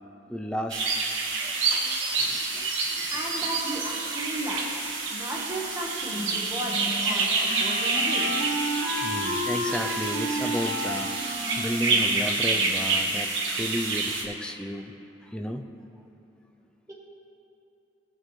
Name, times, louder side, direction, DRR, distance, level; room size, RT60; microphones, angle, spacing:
voice 1, 0.3-1.1 1.4-1.5 1.9-2.7 2.9-3.1 9.0-11.1 11.6-14.9 15.3-15.8, equal, 5° left, 4 dB, 0.4 m, -33 dB
sound 1, 0.7-14.2, right 3 dB, 80° right, 1.3 m, -28 dB
voice 2, 3.1-4.6 5.1-8.3 16.9-17.0, right 1 dB, 15° right, -4 dB, 1.2 m, -34 dB
Wind instrument woodwind instrument, 6.1-13.0, equal, 70° left, 1.6 m, -33 dB
18.0 x 6.3 x 3.1 m, 2.9 s
head